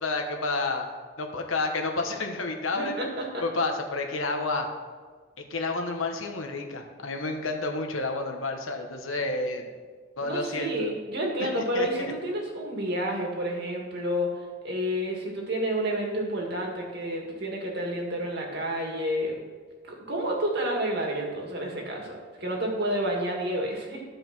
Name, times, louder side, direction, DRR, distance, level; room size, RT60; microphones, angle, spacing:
voice 1, 0.0-0.9 1.2-3.1 3.4-4.7 5.5-9.7 10.2-10.9 11.4-11.5 11.7-12.1, left 3 dB, 90° left, 3 dB, 1.3 m, -30 dB
voice 2, 2.7-3.4 10.2-14.3 14.6-19.4 19.9-24.0, equal, 55° right, 0 dB, 2.1 m, -30 dB
13.5 x 5.1 x 6.0 m, 1.5 s
head